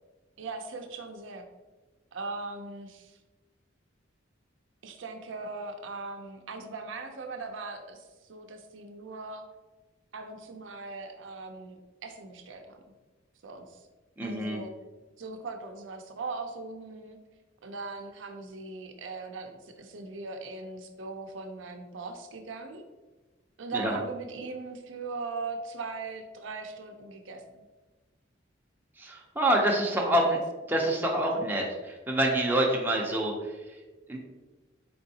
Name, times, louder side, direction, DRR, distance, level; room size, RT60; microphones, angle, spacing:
voice 1, 0.4-1.5 2.1-3.2 4.8-9.4 10.1-12.8 13.4-13.8 14.2-14.7 15.2-17.2 17.6-22.8 23.6-27.6 30.0-30.4, right 3 dB, 75° right, 5 dB, 0.5 m, -39 dB
voice 2, 14.2-14.6 23.7-24.0 29.0-30.4 30.7-33.5 34.1-34.2, right 1 dB, 10° right, -1 dB, 0.5 m, -26 dB
4.3 x 3.8 x 2.7 m, 1.2 s
head